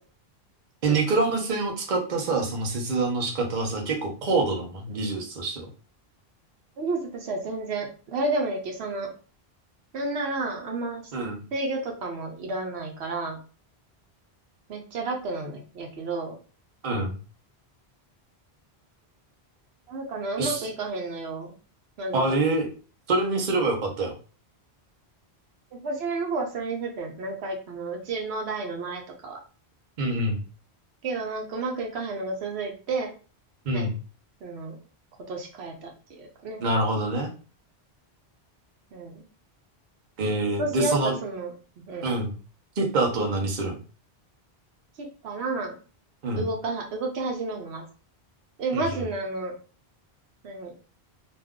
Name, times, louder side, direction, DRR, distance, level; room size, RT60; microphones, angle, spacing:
voice 1, 0.8-5.6 11.1-11.4 16.8-17.2 20.4-20.7 22.1-22.7 23.1-24.1 30.0-30.4 33.6-33.9 36.6-37.3 40.2-41.1 42.0-42.3 42.8-43.8 46.2-46.5 48.7-49.0, right 2 dB, 50° right, 2 dB, 0.8 m, -26 dB
voice 2, 6.8-9.1 9.9-11.0 11.5-13.4 14.7-16.3 19.9-21.5 22.0-22.4 25.7-29.4 31.0-33.1 33.7-33.9 34.4-34.8 35.3-36.6 38.9-39.3 40.3-42.1 45.0-45.7 46.4-47.8 48.6-49.5 50.4-50.7, right 3 dB, 80° right, 2 dB, 0.9 m, -31 dB
2.5 x 2.3 x 3.5 m, 0.37 s
omnidirectional pair, 1.1 m